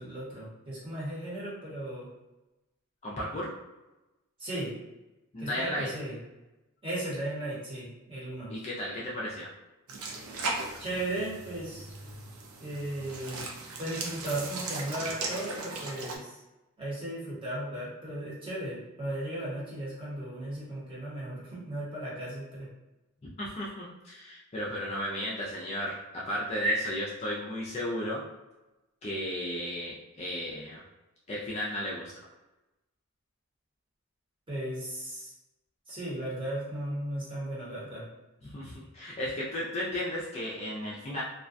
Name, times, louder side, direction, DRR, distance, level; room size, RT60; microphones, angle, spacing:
voice 1, 0.0-2.1 4.4-4.7 5.4-6.1 6.8-8.5 10.8-11.9 12.6-13.5 13.8-16.4 16.8-22.7 34.5-35.3 35.9-38.1, right 1 dB, 25° right, -7 dB, 0.9 m, -36 dB
voice 2, 3.0-3.5 5.3-5.9 8.5-9.5 23.4-28.2 29.0-30.8 31.3-32.1 38.4-41.2, equal, 30° left, -5 dB, 0.3 m, -34 dB
sound 1, 9.9-16.2, right 3 dB, 75° right, 0.4 m, -38 dB
2.3 x 2.2 x 2.5 m, 1.0 s
head